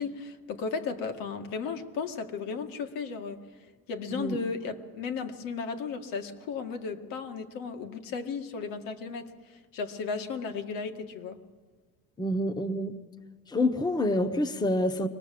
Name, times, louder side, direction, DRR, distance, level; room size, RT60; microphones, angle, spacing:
voice 1, 0.0-3.4 3.9-11.4, left 5 dB, 80° left, 2.1 m, -35 dB
voice 2, 4.0-4.4 12.2-12.9 13.5-15.1, left 1 dB, 10° left, 0.9 m, -27 dB
23.5 x 19.5 x 7.7 m
cardioid pair, 155°, 33 cm